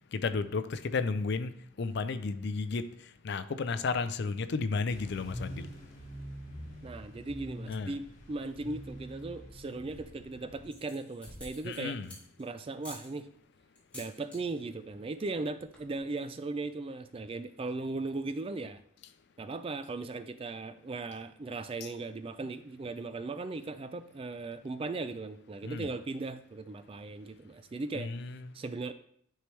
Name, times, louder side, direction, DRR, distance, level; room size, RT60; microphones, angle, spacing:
voice 1, 0.1-1.5 1.8-2.9 3.2-5.7 7.7-7.9 11.6-12.1 25.6-25.9 27.9-28.4, left 4 dB, 55° left, 12 dB, 0.4 m, -33 dB
sound 1, 4.9-10.7, equal, 35° left, 2.1 m, -45 dB
voice 2, 6.8-12.0 12.4-13.3 13.9-18.8 19.4-28.1 28.5-28.9, right 3 dB, 25° right, 11 dB, 0.3 m, -38 dB
sound 2, 9.7-10.2 10.6-12.4 12.8-13.1 13.8-14.4 14.7-15.0 15.3-15.4 15.6-16.0, left 1 dB, 5° left, 1.9 m, -49 dB
10.0 x 4.5 x 3.3 m, 0.65 s
head